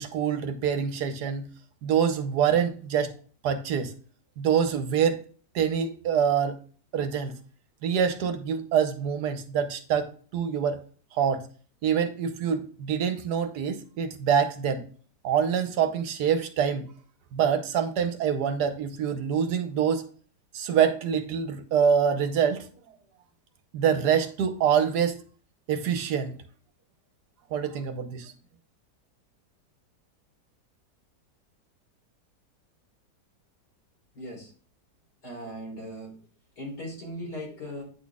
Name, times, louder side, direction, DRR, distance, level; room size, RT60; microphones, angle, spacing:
voice 1, 0.0-1.5 1.8-3.1 3.4-3.9 4.4-5.2 5.5-6.6 6.9-7.4 7.8-10.8 11.1-11.4 11.8-14.8 15.2-16.9 17.3-20.1 20.5-22.7 23.7-25.2 25.7-26.3 27.5-28.3, right 7 dB, 70° right, 9 dB, 1.3 m, -25 dB
voice 2, 34.2-34.5 35.2-36.1 36.6-37.8, equal, 70° left, -3 dB, 4.4 m, -38 dB
9.2 x 4.2 x 3.5 m, 0.41 s
omnidirectional pair, 1.8 m